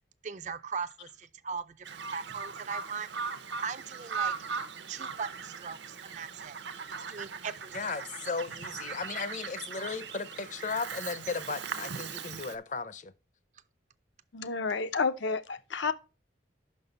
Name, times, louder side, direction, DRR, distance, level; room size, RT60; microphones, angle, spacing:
voice 1, 0.2-4.4 4.9-6.6 7.1-8.1, right 6 dB, 40° right, 0.4 m, -39 dB
Bird vocalization bird call bird song, 1.9-12.6, right 6 dB, 70° right, 0.7 m, -39 dB
voice 2, 7.7-13.1, left 4 dB, 40° left, 0.6 m, -36 dB
voice 3, 14.3-15.9, left 4 dB, 80° left, 0.7 m, -30 dB
5.9 x 5.5 x 6.7 m
head